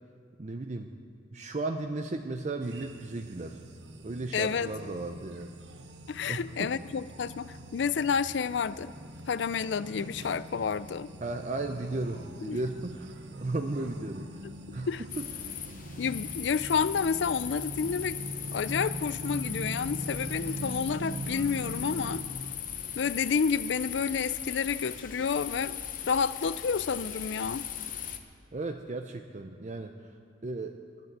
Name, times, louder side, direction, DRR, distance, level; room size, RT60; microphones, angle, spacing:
voice 1, 0.4-0.9 1.3-3.6 4.0-5.6 6.3-6.7 11.2-14.2 14.7-14.9 15.2-15.3 28.5-29.9 30.4-30.7, right 2 dB, 40° right, 5 dB, 0.6 m, -35 dB
sound 1, 2.6-22.2, right 1 dB, 65° right, 0.9 m, -42 dB
voice 2, 4.3-4.7 6.1-8.9 9.3-11.1 12.5-12.6 14.9-15.0 16.0-18.2 18.5-22.2 23.0-25.8 26.1-27.7, left 6 dB, 70° left, 16 dB, 0.4 m, -30 dB
sound 2, 15.1-28.2, left 9 dB, 45° left, 0.8 m, -39 dB
12.0 x 10.5 x 8.0 m, 2.1 s
head